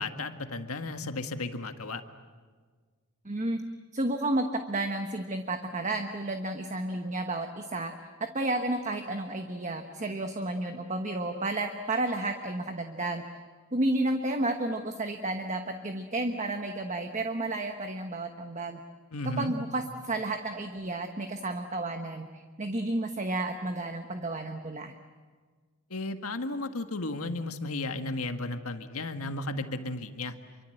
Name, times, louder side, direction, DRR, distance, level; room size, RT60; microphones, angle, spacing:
voice 1, 0.0-2.0 19.1-19.5 25.9-30.3, left 2 dB, 75° left, 7 dB, 1.7 m, -34 dB
voice 2, 3.2-3.6 3.9-7.9 8.2-13.2 13.7-18.8 19.2-24.9, right 2 dB, 35° right, 6 dB, 1.2 m, -31 dB
27.5 x 24.5 x 8.0 m, 1.5 s
head